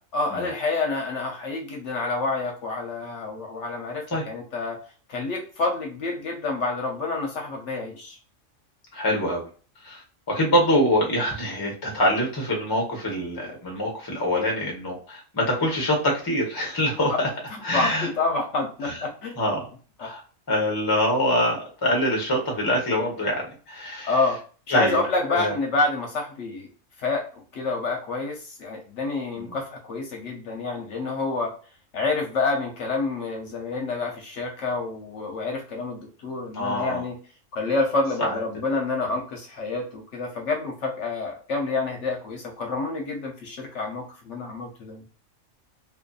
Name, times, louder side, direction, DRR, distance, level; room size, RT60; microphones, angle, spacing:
voice 1, 0.1-4.8 5.1-8.2 17.5-19.4 20.0-20.1 24.0-24.4 24.7-26.7 27.0-31.5 31.9-37.2 37.5-45.0, left 3 dB, 70° left, 1 dB, 0.8 m, -28 dB
voice 2, 8.9-9.5 9.8-17.3 17.6-18.1 18.8-19.0 19.4-19.6 20.0-20.2 20.5-23.4 23.7-24.2 24.7-25.0 25.3-25.5 29.4-29.5 36.5-37.0 38.2-38.4, equal, 25° left, -1 dB, 0.6 m, -24 dB
2.6 x 2.5 x 2.2 m, 0.39 s
omnidirectional pair, 1.4 m